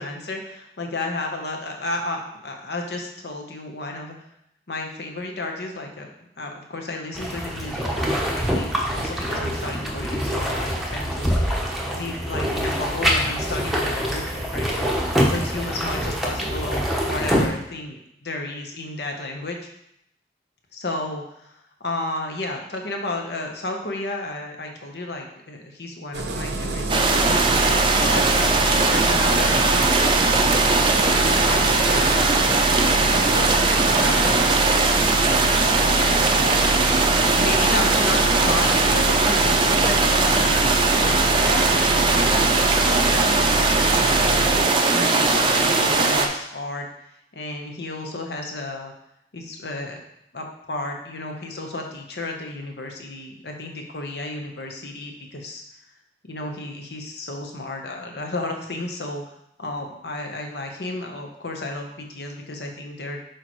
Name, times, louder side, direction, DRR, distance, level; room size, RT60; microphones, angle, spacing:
voice 1, 0.0-4.2 4.7-6.1 6.4-11.3 11.9-14.9 15.3-19.7 20.7-28.3 28.9-30.0 31.0-34.5 36.0-36.4 37.4-44.5 44.9-46.9 47.3-48.9 49.3-50.0 50.3-55.6 56.2-63.2, left 2 dB, 65° left, 2 dB, 1.0 m, -32 dB
sound 1, 7.1-17.5, equal, ahead, 0.8 m, -25 dB
Engine starting, 26.1-44.7, right 1 dB, 70° right, 0.6 m, -27 dB
sound 2, 26.9-46.3, right 3 dB, 25° right, 0.5 m, -19 dB
6.7 x 4.6 x 3.1 m, 0.76 s
head